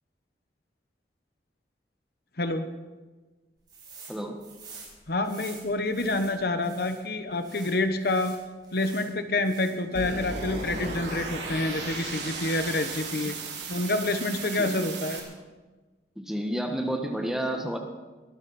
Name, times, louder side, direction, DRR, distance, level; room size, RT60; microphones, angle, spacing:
sound 1, 3.7-4.1 4.4-7.0 7.4-9.1 9.4-9.9, right 4 dB, 25° right, 6.7 m, -47 dB
voice 1, 4.1-4.4 13.2-13.3 14.5-14.8 16.1-17.8, right 1 dB, ahead, 3 dB, 1.5 m, -30 dB
voice 2, 5.1-8.3 8.7-13.3 13.7-15.3, left 2 dB, 60° left, 8 dB, 1.1 m, -28 dB
sound 2, 9.9-15.2, right 3 dB, 80° right, 3.4 m, -35 dB
22.0 x 14.0 x 4.3 m, 1.3 s
head